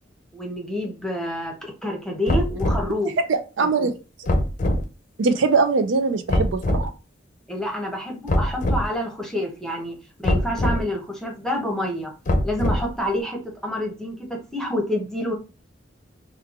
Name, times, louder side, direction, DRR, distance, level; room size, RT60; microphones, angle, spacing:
voice 1, 0.3-3.2 7.5-9.9 10.2-12.1 12.4-15.3, left 1 dB, 5° left, 1 dB, 0.7 m, -28 dB
sound 1, 2.3-2.9 4.3-4.8 6.3-6.9 8.3-8.9 10.2-10.8 12.3-13.0, left 1 dB, 45° left, 0.6 m, -22 dB
voice 2, 3.2-4.0 5.2-6.9, right 4 dB, 80° right, 8 dB, 0.5 m, -21 dB
3.1 x 2.3 x 3.6 m, 0.31 s
head